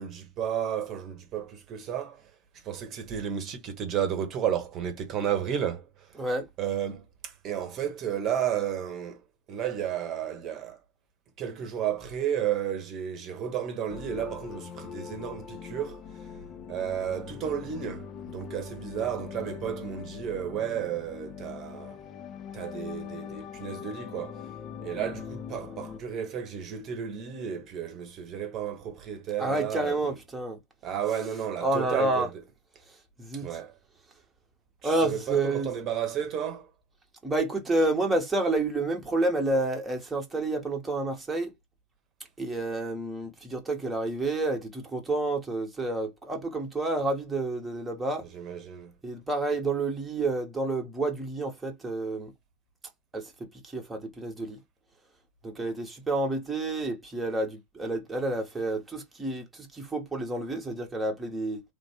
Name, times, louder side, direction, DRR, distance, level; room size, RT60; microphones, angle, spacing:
voice 1, 0.0-6.1 6.6-9.2 9.5-10.8 11.4-16.4 16.7-22.0 22.5-24.4 24.8-30.2 30.8-32.3 33.3-33.8 34.8-36.7 48.3-48.9, right 9 dB, 35° right, 1.0 m, -33 dB
sound 1, 13.9-26.0, left 8 dB, 30° left, 0.6 m, -42 dB
voice 2, 29.4-30.6 31.6-32.3 33.2-33.5 34.8-35.7 37.2-41.5 42.4-48.2 49.0-52.3 53.1-53.3 53.6-54.6 55.4-61.6, right 2 dB, 10° right, 1.0 m, -29 dB
3.5 x 2.6 x 3.4 m
figure-of-eight pair, 90°, 0 cm